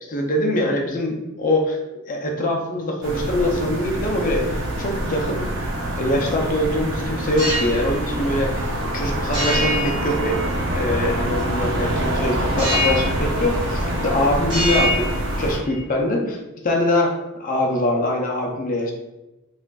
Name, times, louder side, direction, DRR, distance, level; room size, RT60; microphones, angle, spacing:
voice 1, 0.1-1.8 2.1-4.5 4.8-5.5 6.0-8.5 8.8-15.1 15.4-18.9, left 1 dB, 35° left, 1 dB, 0.5 m, -23 dB
sound 1, 3.0-15.6, right 1 dB, 60° right, 0.7 m, -25 dB
sound 2, 7.4-7.8 9.3-10.8 12.6-13.3 13.6-14.1 14.4-15.8, left 1 dB, 20° right, 1.0 m, -26 dB
4.6 x 2.4 x 2.3 m, 1.0 s
head